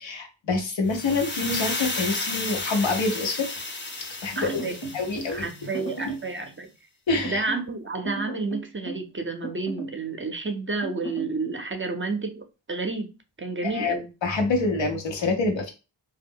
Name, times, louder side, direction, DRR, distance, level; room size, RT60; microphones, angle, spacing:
voice 1, 0.0-3.5 4.2-5.5 7.1-7.4 13.6-14.0 14.2-15.7, left 3 dB, 90° left, 0.8 m, -26 dB
sound 1, 0.9-5.9, left 2 dB, 25° left, 0.5 m, -33 dB
sound 2, 4.4-5.3 5.7-6.3 7.1-7.7 8.0-9.1 9.4-10.0 10.8-11.3, right 2 dB, 65° left, 1.0 m, -35 dB
voice 2, 4.4-4.9 5.3-6.7 7.2-13.1 13.4-14.1, right 3 dB, 30° right, 0.5 m, -30 dB
2.3 x 2.0 x 3.5 m
cardioid pair, 50°, 44 cm